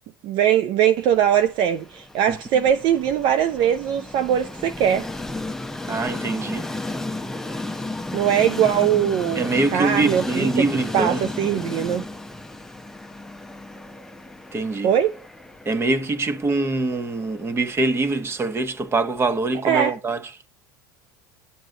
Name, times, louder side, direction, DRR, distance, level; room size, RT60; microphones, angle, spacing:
voice 1, 0.2-5.1 8.1-10.7 10.9-12.1 14.8-15.2 19.6-20.0, right 9 dB, 50° right, 0.6 m, -21 dB
Train, 1.1-19.2, left 2 dB, 5° left, 0.9 m, -34 dB
voice 2, 2.3-2.6 5.9-6.7 9.3-11.3 14.5-14.9 15.6-20.2, right 3 dB, 25° right, 1.5 m, -24 dB
10.5 x 8.9 x 3.9 m
figure-of-eight pair, 75°, 11 cm